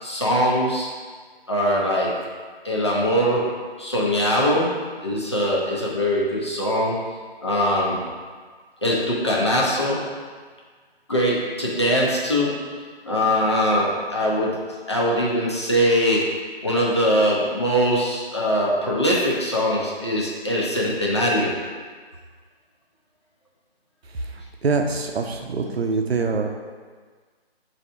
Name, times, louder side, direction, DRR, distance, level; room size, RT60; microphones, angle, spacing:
voice 1, 0.0-0.9 1.5-2.2 2.6-7.0 7.4-8.0 8.8-10.1 11.1-12.7 13.1-14.6 14.9-16.4 16.6-21.6, equal, 25° left, -4 dB, 0.5 m, -22 dB
voice 2, 24.1-26.5, right 4 dB, 75° right, 3 dB, 0.6 m, -25 dB
4.0 x 2.8 x 4.3 m, 1.6 s
figure-of-eight pair, 165°, 31 cm